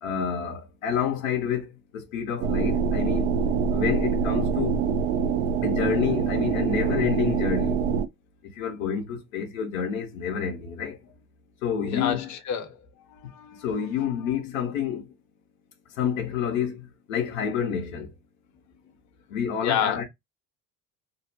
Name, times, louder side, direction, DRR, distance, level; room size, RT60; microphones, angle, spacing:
voice 1, 0.0-3.3 3.7-4.8 5.6-7.8 8.5-11.0 11.6-12.3 13.6-15.1 16.0-18.1 19.3-20.0, left 8 dB, 85° left, 0.7 m, -28 dB
sound 1, 2.4-8.1, right 6 dB, 75° right, 0.5 m, -25 dB
voice 2, 11.8-12.8 13.1-13.6 14.0-14.1 19.6-20.0, left 8 dB, 45° left, 0.8 m, -29 dB
2.6 x 2.0 x 2.5 m
hypercardioid pair, 70°, 39 cm